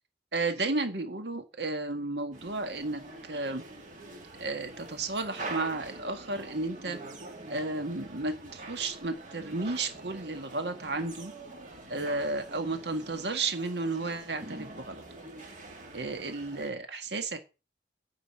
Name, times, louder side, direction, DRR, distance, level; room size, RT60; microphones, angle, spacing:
voice 1, 0.3-3.6 4.4-7.0 7.5-11.3 11.9-15.0 15.9-17.4, right 3 dB, 70° right, 7 dB, 1.8 m, -33 dB
sound 1, 2.3-16.7, right 2 dB, 45° right, 2.7 m, -45 dB
9.5 x 6.5 x 8.7 m, 0.31 s
head